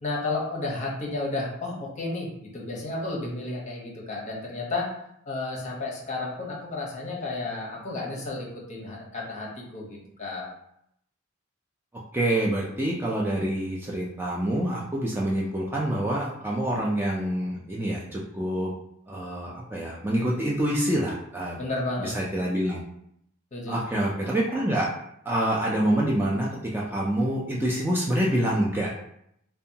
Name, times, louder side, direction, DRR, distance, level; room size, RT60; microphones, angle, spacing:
voice 1, 0.0-4.9 5.3-10.5 21.6-22.1 23.5-24.1, left 2 dB, 35° left, -2 dB, 0.8 m, -32 dB
voice 2, 12.1-18.7 19.1-21.6 22.0-22.8 23.7-24.9 25.3-28.9, right 1 dB, 10° right, -4 dB, 0.3 m, -26 dB
2.7 x 2.2 x 2.7 m, 0.73 s
head